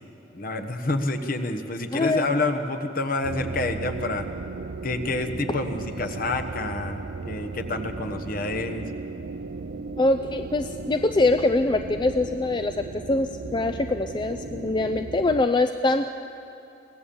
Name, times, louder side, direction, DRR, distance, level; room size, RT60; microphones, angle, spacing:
voice 1, 0.3-4.3 4.8-7.0 7.3-8.9, left 2 dB, 55° left, 6 dB, 1.3 m, -28 dB
voice 2, 1.9-2.3 10.0-16.1, left 2 dB, 25° left, 8 dB, 0.4 m, -23 dB
sound 1, 3.2-15.4, right 3 dB, 80° right, 0.6 m, -36 dB
23.5 x 17.5 x 7.1 m, 2.8 s
head